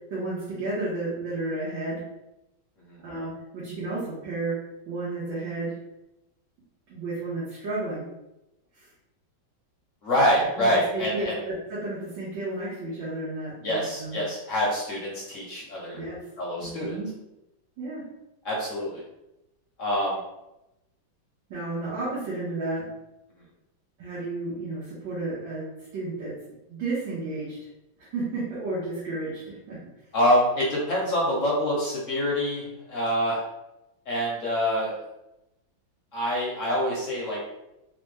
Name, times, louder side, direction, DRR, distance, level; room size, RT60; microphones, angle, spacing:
voice 1, 0.1-2.0 3.0-4.6 4.9-5.8 6.9-8.0 8.7-8.9 10.6-14.2 15.9-16.2 16.6-17.1 17.8-18.0 21.5-22.8 24.0-25.7 25.9-26.3 26.7-27.6 28.0-29.8, right 2 dB, 75° right, -9 dB, 1.8 m, -32 dB
voice 2, 10.0-11.4 13.6-16.0 16.4-17.0 18.4-19.0 19.8-20.2 30.1-33.4 34.1-35.0 36.1-37.5, equal, 55° left, -4 dB, 0.9 m, -26 dB
4.1 x 2.2 x 3.2 m, 0.92 s
omnidirectional pair, 2.1 m